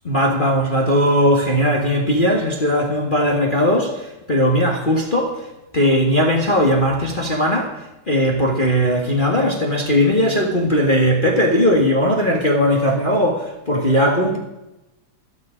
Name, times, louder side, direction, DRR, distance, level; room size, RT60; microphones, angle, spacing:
voice 1, 0.0-5.4 5.7-7.8 8.1-14.4, equal, 25° left, 1.3 m, -18 dB
13.5 x 13.0 x 5.1 m
omnidirectional pair, 3.3 m